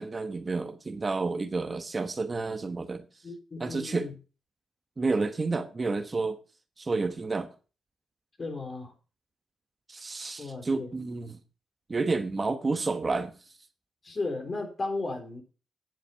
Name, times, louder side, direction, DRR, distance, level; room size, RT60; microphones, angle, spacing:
voice 1, 0.0-3.1 3.6-4.1 5.0-6.4 6.8-7.5 9.9-11.4 11.9-13.3, right 3 dB, 35° right, 1.1 m, -30 dB
voice 2, 3.2-4.1 8.4-8.9 10.4-10.9 14.0-15.4, left 3 dB, 35° left, 3.8 m, -35 dB
10.0 x 7.5 x 5.6 m
cardioid pair, 70°, 0 cm